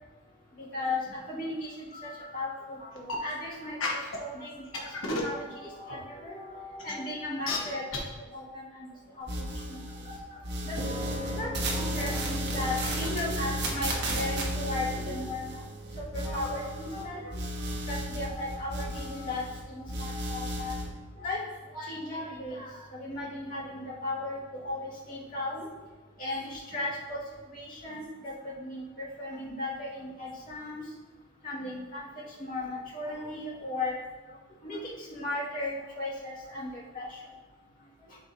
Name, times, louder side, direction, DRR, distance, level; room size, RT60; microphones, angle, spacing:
voice 1, 0.6-8.0 8.3-8.9 9.2-10.2 10.6-10.7 11.3-15.6 16.1-17.3 17.6-20.7 21.2-21.4 21.7-25.7 26.2-27.2 27.5-30.8 31.4-32.0 32.4-34.0 34.6-37.2, left 2 dB, 45° left, -7 dB, 2.2 m, -36 dB
sound 1, 3.0-3.1 3.8-4.2 4.7-5.3 5.9-6.0 6.8-6.9 7.5-7.6 7.9-8.0, left 3 dB, 90° left, 1.3 m, -30 dB
sound 2, 9.3-10.2 10.4-17.0 17.3-19.6 19.9-20.9, right 1 dB, 60° right, 1.5 m, -34 dB
sound 3, 10.8-27.3, right 1 dB, 25° right, 0.8 m, -45 dB
11.0 x 4.6 x 2.8 m, 1.2 s
head